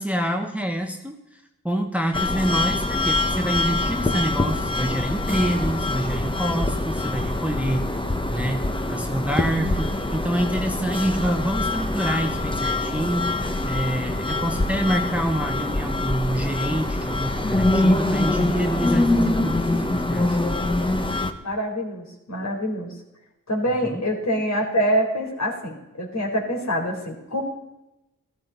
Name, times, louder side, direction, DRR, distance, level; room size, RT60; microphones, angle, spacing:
voice 1, 0.0-8.0 8.3-20.4 23.8-24.1, right 1 dB, 5° right, 3 dB, 1.4 m, -27 dB
sound 1, 2.1-21.3, left 2 dB, 15° left, 1.4 m, -24 dB
voice 2, 21.4-22.9 23.5-27.4, equal, 55° left, -2 dB, 4.2 m, -25 dB
13.5 x 13.5 x 4.1 m, 0.93 s
cardioid pair, 45°, 32 cm